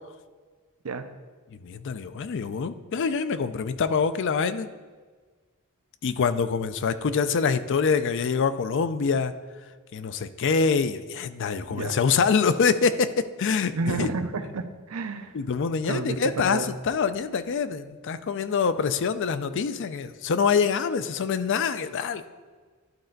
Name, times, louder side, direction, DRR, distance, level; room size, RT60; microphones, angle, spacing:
voice 1, 1.6-4.7 6.0-9.3 9.9-14.1 15.3-22.2, left 5 dB, 60° left, 12 dB, 0.4 m, -25 dB
voice 2, 13.7-15.4 15.9-16.7, right 3 dB, 85° right, 8 dB, 0.6 m, -30 dB
11.5 x 4.3 x 3.9 m, 1.4 s
head